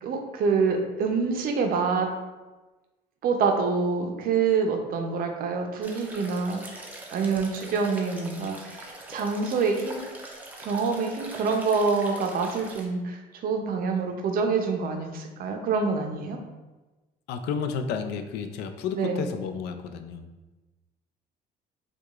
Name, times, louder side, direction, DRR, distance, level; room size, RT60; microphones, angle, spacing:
voice 1, 0.0-2.1 3.2-6.6 7.1-10.1 10.6-16.4 18.9-19.2, right 5 dB, 60° right, 4 dB, 0.5 m, -26 dB
sound 1, 5.8-12.9, right 1 dB, 10° right, 0.6 m, -43 dB
voice 2, 17.3-20.3, left 6 dB, 80° left, 6 dB, 0.4 m, -31 dB
4.6 x 2.3 x 2.3 m, 1.1 s
cardioid pair, 110°, 17 cm